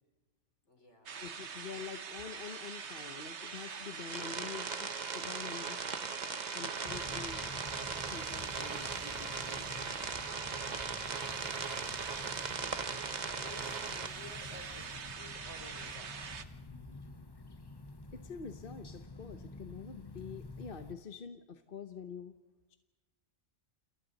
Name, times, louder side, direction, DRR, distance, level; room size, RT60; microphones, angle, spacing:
voice 1, 0.7-1.2 10.5-10.8 11.1-11.9 12.2-13.0 13.3-16.2, left 2 dB, 80° left, 4 dB, 4.2 m, -55 dB
sound 1, 1.1-16.4, right 6 dB, 70° right, 1.4 m, -44 dB
voice 2, 1.2-5.8 6.5-7.5 8.1-10.1 18.1-22.3, left 6 dB, 50° left, 7 dB, 1.2 m, -46 dB
sound 2, 4.1-14.1, right 4 dB, 40° right, 1.1 m, -39 dB
sound 3, 6.9-20.9, left 3 dB, 20° left, 0.9 m, -49 dB
30.0 x 27.5 x 4.1 m, 1.2 s
omnidirectional pair, 1.2 m